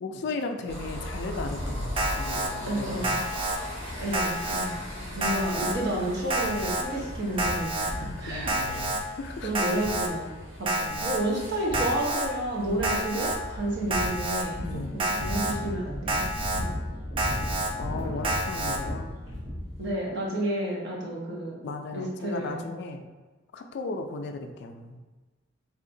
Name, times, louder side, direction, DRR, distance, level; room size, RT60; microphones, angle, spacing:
voice 1, 0.0-3.2 5.0-5.3 8.3-9.5 14.6-15.0 17.8-19.1 21.6-23.1 23.5-25.0, left 3 dB, 55° left, 5 dB, 0.3 m, -36 dB
sound 1, 0.7-19.9, left 1 dB, 75° right, 1.2 m, -36 dB
Alarm, 2.0-2.5 3.0-3.6 4.1-4.7 5.2-5.7 6.3-6.8 7.4-7.9 8.5-9.0 9.5-10.1 10.7-11.2 11.7-12.3 12.8-13.4 13.9-14.4 15.0-15.5 16.1-16.6 17.2-17.7 18.2-18.8, right 1 dB, 25° right, 0.3 m, -29 dB
voice 2, 2.6-3.2 4.0-4.7 5.1-8.5 8.9-9.0 9.4-10.3 10.6-16.3 16.6-16.7 19.8-21.6 21.9-22.6, right 1 dB, 55° right, -3 dB, 0.8 m, -31 dB
3.6 x 2.7 x 2.6 m, 1.3 s
head